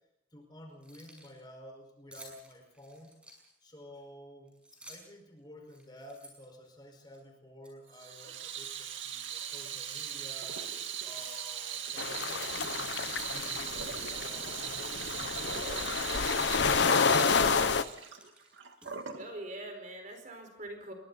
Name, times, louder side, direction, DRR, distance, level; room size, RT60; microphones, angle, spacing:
voice 1, 0.3-3.2 3.6-10.7 11.0-13.0 13.3-17.9, left 1 dB, 20° left, 3 dB, 5.2 m, -52 dB
Keys jangling, 0.7-1.4 2.1-3.7 4.5-5.2 5.6-7.2 7.6-7.8 8.2-8.8 9.2-9.3 9.9-10.8 11.1-12.0 12.4-13.3 13.5-13.7 14.0-15.3 15.6-15.7 16.1-16.3 16.9-17.1 17.4-19.2, right 1 dB, 5° right, 6.1 m, -55 dB
Water tap faucet / Sink (filling or washing), 7.9-19.3, right 8 dB, 80° right, 2.2 m, -39 dB
sound 1, 12.0-17.8, left 5 dB, 65° left, 0.8 m, -29 dB
voice 2, 19.1-20.9, right 1 dB, 40° right, 3 dB, 4.9 m, -43 dB
30.0 x 22.5 x 4.2 m, 0.81 s
head